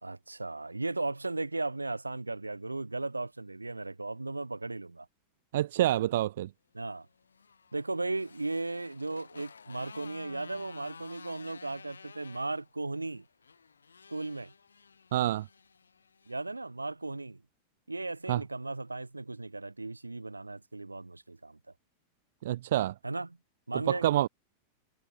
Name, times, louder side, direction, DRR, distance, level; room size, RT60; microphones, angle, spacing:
voice 1, 0.0-5.1 6.7-7.1 7.7-13.3 14.1-14.5 16.3-17.4 17.9-21.6 23.0-23.4 23.7-24.3, right 2 dB, 80° right, 1.2 m, -36 dB
voice 2, 5.5-6.5 15.1-15.5 18.3-18.4 22.4-22.9 23.9-24.3, right 13 dB, 55° right, 0.3 m, -27 dB
Motorcycle, 7.0-16.5, left 5 dB, 75° left, 4.6 m, -53 dB
figure-of-eight pair, 90°, 0 cm